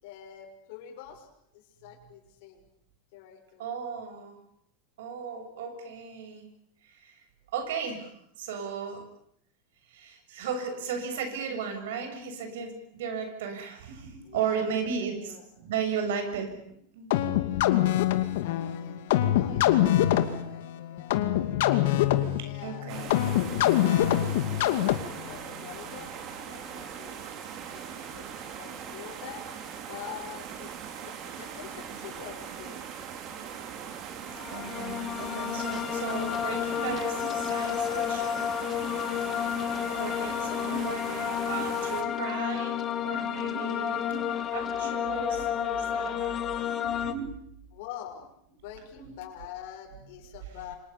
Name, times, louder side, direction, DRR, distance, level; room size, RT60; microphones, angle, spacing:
voice 1, 0.0-1.3 1.5-2.6 3.1-3.6 14.2-15.5 18.4-21.3 22.4-27.4 27.7-29.4 29.9-32.8 40.4-40.7 47.7-50.7, left 9 dB, 55° left, 2 dB, 6.3 m, -46 dB
voice 2, 3.6-4.3 5.0-6.5 6.8-7.2 7.5-8.1 8.4-9.0 9.9-16.6 16.9-17.1 22.6-23.2 24.2-24.5 34.5-38.5 38.8-39.1 40.0-47.3, right 6 dB, 85° right, 6 dB, 7.4 m, -35 dB
sound 1, 17.1-25.3, left 13 dB, 70° left, 2.5 m, -25 dB
sound 2, 22.9-42.0, right 7 dB, 30° right, 3.4 m, -40 dB
sound 3, 34.3-47.1, left 9 dB, 20° left, 1.6 m, -31 dB
29.5 x 26.0 x 7.2 m, 0.70 s
supercardioid pair, 175°, 0 cm